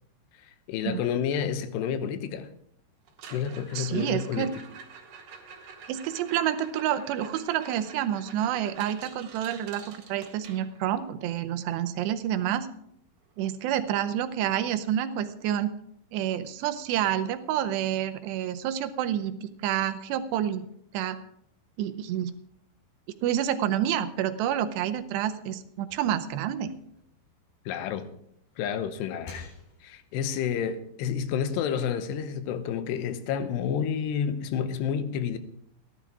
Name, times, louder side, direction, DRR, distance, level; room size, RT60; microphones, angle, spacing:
voice 1, 0.4-2.5 3.3-4.5 27.7-28.1 28.6-29.5 29.8-35.4, left 8 dB, 80° left, 3.0 m, -30 dB
sound 1, 3.1-11.1 13.3-13.4 13.7-14.0 14.4-14.5 15.1-15.2 17.1-17.2, right 6 dB, 60° right, 3.1 m, -48 dB
voice 2, 3.8-4.5 5.9-12.7 13.4-15.7 16.1-20.7 20.9-21.2 21.8-22.3 23.2-26.7, right 10 dB, 80° right, 2.8 m, -28 dB
sound 2, 24.8-27.9 28.4-30.2, left 4 dB, 60° left, 5.9 m, -51 dB
15.5 x 11.0 x 4.8 m
omnidirectional pair, 5.0 m